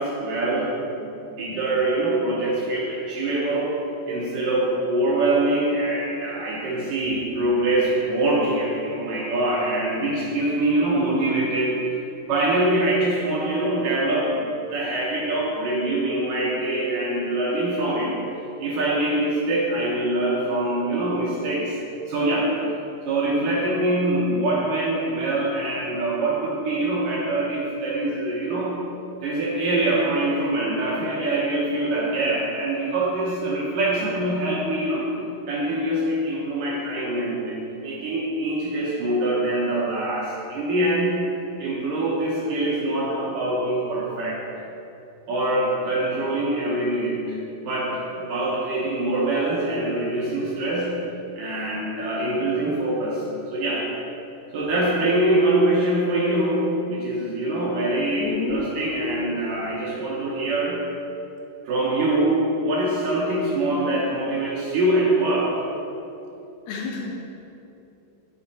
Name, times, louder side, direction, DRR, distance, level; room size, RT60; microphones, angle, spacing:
voice 1, 0.0-3.8 4.1-11.8 12.3-14.4 14.7-18.2 18.6-21.8 22.1-22.5 23.1-28.8 29.2-35.1 35.5-41.2 41.6-44.4 45.3-50.9 51.4-53.3 53.5-53.9 54.5-60.8 61.7-65.5, right 1 dB, 70° right, -6 dB, 2.3 m, -24 dB
voice 2, 58.2-58.6 66.7-67.3, left 4 dB, 75° left, 0 dB, 2.7 m, -29 dB
10.0 x 5.6 x 4.3 m, 2.9 s
omnidirectional pair, 4.8 m